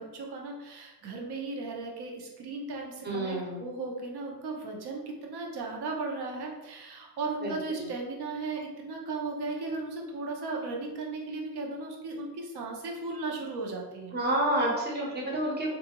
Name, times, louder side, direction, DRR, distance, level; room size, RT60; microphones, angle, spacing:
voice 1, 0.0-14.1, right 3 dB, 65° right, 0 dB, 0.8 m, -36 dB
voice 2, 3.0-3.6 7.4-7.9 14.1-15.7, right 1 dB, 25° right, -3 dB, 0.8 m, -29 dB
3.8 x 2.4 x 2.9 m, 1.1 s
cardioid pair, 165°, 43 cm